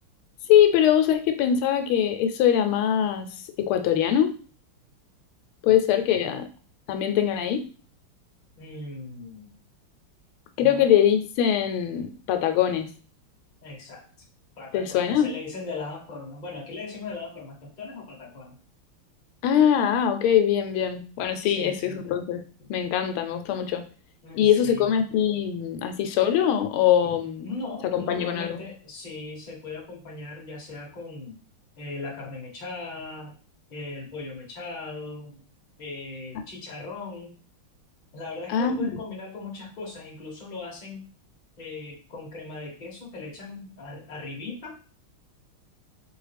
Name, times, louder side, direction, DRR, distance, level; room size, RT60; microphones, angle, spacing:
voice 1, 0.5-3.3 3.6-4.4 5.6-6.5 6.9-7.6 10.6-12.9 14.7-15.3 19.4-22.4 22.7-23.8 24.3-27.5 27.9-28.6 38.5-39.0, left 9 dB, 85° left, 7 dB, 1.4 m, -22 dB
voice 2, 6.1-6.4 8.6-9.5 10.6-10.8 13.6-14.0 14.6-18.6 21.4-22.0 24.2-24.9 27.0-31.3 31.8-33.3 33.7-35.4 35.8-37.3 38.1-41.1 41.6-44.8, left 3 dB, 30° left, -2 dB, 1.0 m, -38 dB
4.0 x 3.1 x 3.3 m, 0.38 s
omnidirectional pair, 2.3 m